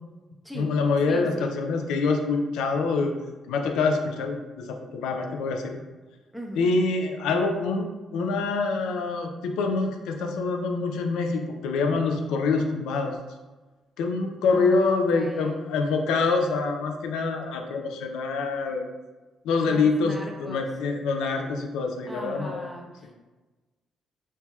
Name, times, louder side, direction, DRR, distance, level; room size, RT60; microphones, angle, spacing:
voice 1, 0.5-3.1 3.5-5.7 6.6-7.9 8.1-13.1 14.0-18.8 19.4-22.7, left 4 dB, 90° left, 4 dB, 0.3 m, -25 dB
voice 2, 1.1-1.6 6.3-6.8 14.5-15.7 19.6-20.7 22.1-23.2, equal, ahead, -1 dB, 0.5 m, -38 dB
4.3 x 2.0 x 2.2 m, 1.2 s
cardioid pair, 90°, 0 cm